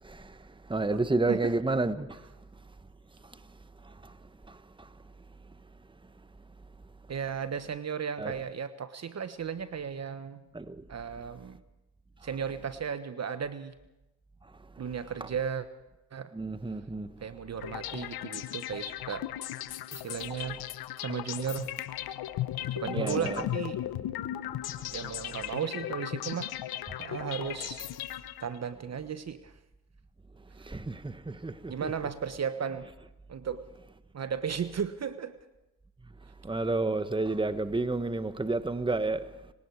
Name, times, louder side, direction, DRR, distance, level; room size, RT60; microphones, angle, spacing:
voice 1, 0.0-2.3 3.2-3.4 3.8-4.2 4.5-5.0 8.2-8.3 10.5-10.9 14.4-14.8 15.2-15.3 16.3-17.2 22.6-23.5 30.6-31.9 36.4-39.5, right 2 dB, 10° right, 1.5 m, -31 dB
voice 2, 7.1-10.4 10.9-11.6 12.2-13.7 14.8-15.7 16.1-16.3 17.2-19.3 19.9-20.6 21.0-21.7 22.7-23.8 24.9-26.5 27.0-27.9 28.4-29.5 31.7-32.9 33.3-33.6 34.1-35.4, right 7 dB, 40° right, 1.3 m, -35 dB
sound 1, 17.6-28.7, left 13 dB, 65° left, 1.2 m, -36 dB
30.0 x 18.5 x 4.8 m
hypercardioid pair, 55°, 40 cm